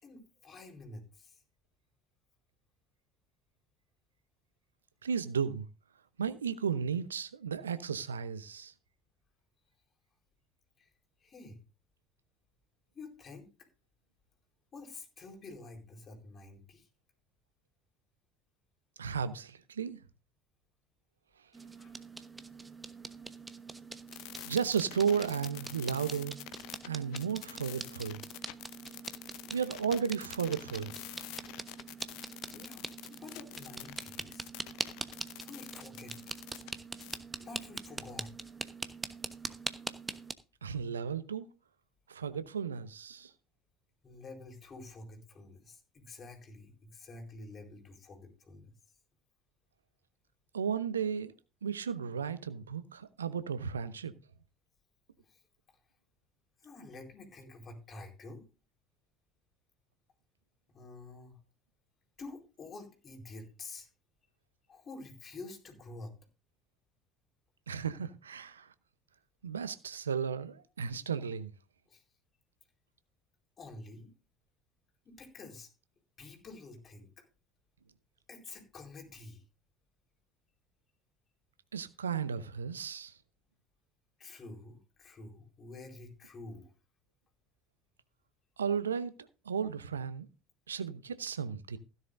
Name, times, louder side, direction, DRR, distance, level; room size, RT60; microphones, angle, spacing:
voice 1, 0.0-1.4 10.8-10.9 11.2-11.6 12.9-13.5 14.7-16.9 21.8-21.9 29.4-30.0 32.5-34.5 35.4-36.2 37.4-38.3 44.0-48.7 55.2-55.4 55.7-55.8 56.6-58.5 60.7-61.4 62.2-63.9 64.7-66.1 71.9-72.0 73.6-74.1 75.0-75.7 76.2-77.3 78.3-79.4 84.2-86.7, left 3 dB, 35° left, 4.3 m, -49 dB
voice 2, 5.0-5.7 6.2-8.7 19.0-20.0 24.5-26.4 26.8-28.2 29.5-30.9 40.6-41.5 42.1-43.3 50.5-51.3 51.6-54.1 67.7-68.7 69.4-71.5 81.7-83.1 88.6-90.3 90.7-91.8, right 7 dB, 80° right, 0.8 m, -34 dB
sound 1, 21.5-40.3, right 3 dB, 15° right, 1.1 m, -43 dB
sound 2, 24.1-36.7 37.0-37.2, left 17 dB, 60° left, 0.7 m, -47 dB
16.0 x 11.0 x 2.6 m
figure-of-eight pair, 60°, 0 cm